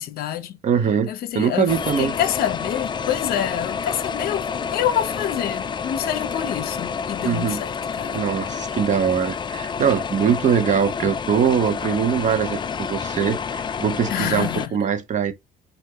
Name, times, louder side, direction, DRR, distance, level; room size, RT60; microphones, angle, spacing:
voice 1, 0.0-0.6 1.1-8.2 14.1-14.7, left 11 dB, 65° left, 0.8 m, -27 dB
voice 2, 0.6-2.1 7.2-7.6 8.1-15.3, right 7 dB, 45° right, 0.9 m, -22 dB
sound 1, 1.7-14.7, left 6 dB, 25° left, 0.4 m, -29 dB
4.7 x 2.5 x 3.6 m
cardioid pair, 110°, 17 cm